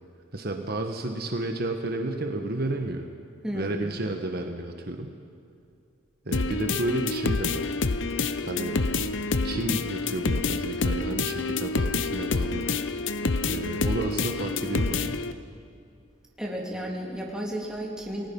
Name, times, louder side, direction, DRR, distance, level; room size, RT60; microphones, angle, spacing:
voice 1, 0.3-3.1 3.5-5.1 6.2-7.7 8.4-8.8 9.4-12.7 13.5-15.2, right 2 dB, 50° right, 4 dB, 1.4 m, -31 dB
voice 2, 3.4-3.9 16.4-18.3, equal, 5° right, -2 dB, 3.2 m, -33 dB
sound 1, 6.3-15.3, left 3 dB, 70° left, 0.8 m, -27 dB
29.5 x 20.0 x 5.4 m, 2.6 s
head